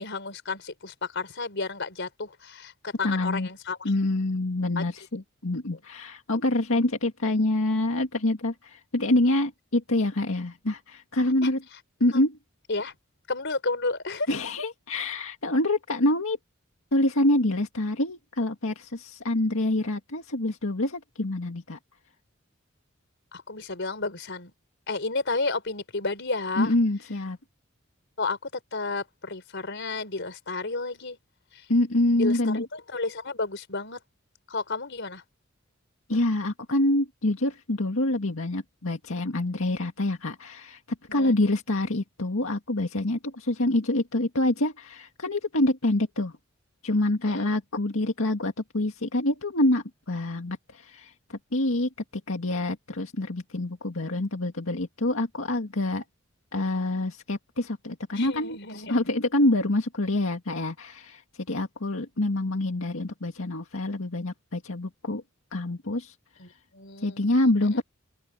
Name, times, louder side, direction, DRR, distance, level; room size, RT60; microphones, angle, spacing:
voice 1, 0.0-3.8 4.8-4.9 5.7-5.8 11.4-11.5 12.1-12.2 12.7-13.0 13.3-14.3 23.3-24.5 24.9-26.7 28.2-31.2 32.1-34.0 34.5-35.2 41.1-41.4 47.3-47.5 58.1-59.1 66.4-67.7, left 3 dB, 60° left, 4.6 m, -32 dB
voice 2, 3.0-3.5 3.8-11.6 12.0-12.4 14.3-16.4 16.9-21.8 26.6-27.4 31.7-32.6 36.1-40.8 41.1-46.3 46.8-51.9 52.3-56.0 56.5-61.2 61.5-65.2 65.5-66.1 67.0-67.8, left 1 dB, 85° left, 2.0 m, -26 dB
open air
head